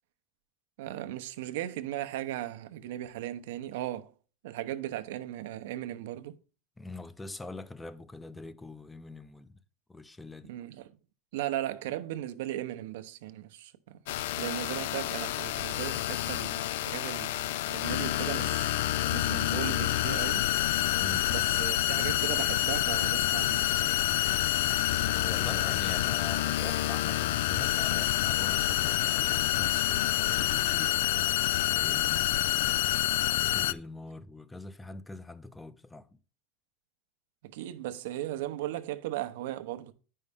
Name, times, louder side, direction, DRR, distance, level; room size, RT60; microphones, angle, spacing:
voice 1, 0.8-4.1 4.4-6.4 10.4-10.9 11.3-18.7 19.1-20.5 21.3-23.8 37.4-39.9, right 13 dB, 80° right, 0.8 m, -37 dB
voice 2, 6.8-9.6 9.9-10.5 21.0-21.3 25.0-32.3 33.4-36.2, left 2 dB, 10° left, 0.6 m, -44 dB
sound 1, 14.1-33.7, left 14 dB, 80° left, 0.3 m, -28 dB
9.4 x 5.5 x 3.5 m
supercardioid pair, 120°, 0 cm